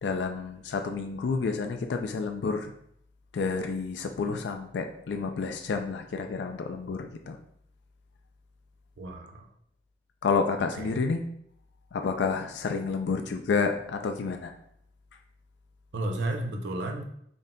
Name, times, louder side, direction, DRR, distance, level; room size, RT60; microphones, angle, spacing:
voice 1, 0.0-2.7 3.3-7.4 10.2-11.2 11.9-14.5, left 4 dB, 85° left, 5 dB, 0.3 m, -29 dB
voice 2, 9.0-9.5 10.8-11.0 15.9-17.0, right 1 dB, 90° right, 2 dB, 0.5 m, -32 dB
3.9 x 2.2 x 3.6 m, 0.70 s
head